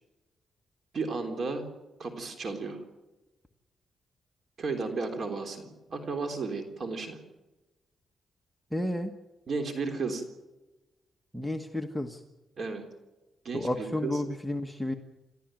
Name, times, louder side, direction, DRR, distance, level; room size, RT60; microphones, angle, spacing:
voice 1, 0.9-1.7 2.0-2.8 4.6-7.2 9.5-10.2 12.6-12.8 13.4-14.2, right 4 dB, 50° right, 5 dB, 3.5 m, -33 dB
voice 2, 8.7-9.1 11.3-12.2 13.5-14.9, left 1 dB, ahead, 4 dB, 1.4 m, -31 dB
28.5 x 14.0 x 9.1 m, 1.1 s
cardioid pair, 110°, 0 cm